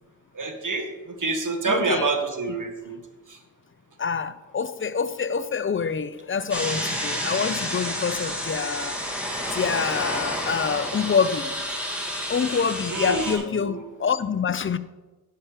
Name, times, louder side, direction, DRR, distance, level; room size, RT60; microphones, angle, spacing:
voice 1, 0.3-0.9 1.2-3.0 12.9-13.8, right 3 dB, 50° right, 1.5 m, -27 dB
voice 2, 1.6-2.1 4.0-9.0 9.5-11.7 12.3-14.8, left 6 dB, 30° left, 0.5 m, -26 dB
sound 1, 6.5-13.3, equal, 5° right, 2.2 m, -30 dB
11.5 x 5.7 x 5.1 m
cardioid pair, 60°, 40 cm